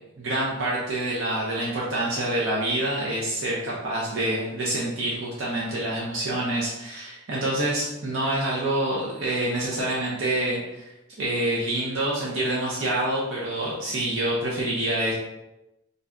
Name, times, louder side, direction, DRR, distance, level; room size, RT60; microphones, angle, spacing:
voice 1, 0.2-10.8 11.2-15.1, right 1 dB, 70° right, -5 dB, 0.6 m, -27 dB
2.6 x 2.2 x 3.5 m, 0.94 s
head